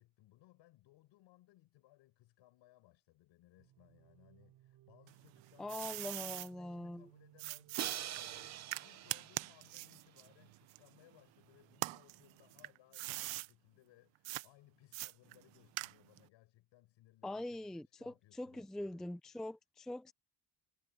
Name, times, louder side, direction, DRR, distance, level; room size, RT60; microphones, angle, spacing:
voice 1, 0.0-19.1, left 16 dB, 75° left, 5.6 m, -66 dB
sound 1, 3.6-12.7, right 13 dB, 60° right, 7.1 m, -66 dB
sound 2, 5.1-6.5 7.4-11.3 11.7-13.5 14.2-14.5 14.9-16.3, right 20 dB, 75° right, 0.8 m, -43 dB
voice 2, 5.6-7.1 17.2-20.1, left 1 dB, ahead, 0.4 m, -43 dB
Crash cymbal, 7.8-9.8, right 12 dB, 35° right, 0.7 m, -43 dB
cardioid pair, 170°, 45 cm